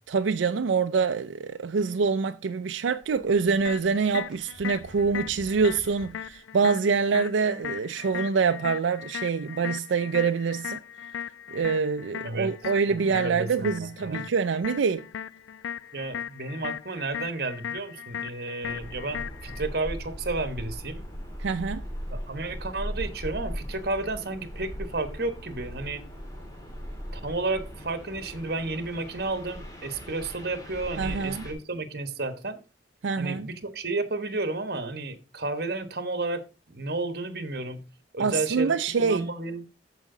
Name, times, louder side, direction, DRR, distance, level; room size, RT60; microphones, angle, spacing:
voice 1, 0.1-10.8 11.5-15.1 21.4-21.8 31.0-31.5 33.0-33.5 38.2-39.3, right 5 dB, 85° right, 0.4 m, -25 dB
sound 1, 2.8-6.3, right 1 dB, 5° right, 3.2 m, -49 dB
sound 2, 3.6-19.6, left 9 dB, 90° left, 0.3 m, -38 dB
voice 2, 12.9-14.3 15.9-21.0 22.1-26.0 27.1-32.6 33.2-36.4 36.7-37.8 38.1-39.6, right 3 dB, 55° right, 1.2 m, -32 dB
sound 3, 18.6-31.5, equal, 20° left, 1.9 m, -38 dB
13.5 x 5.0 x 3.8 m
head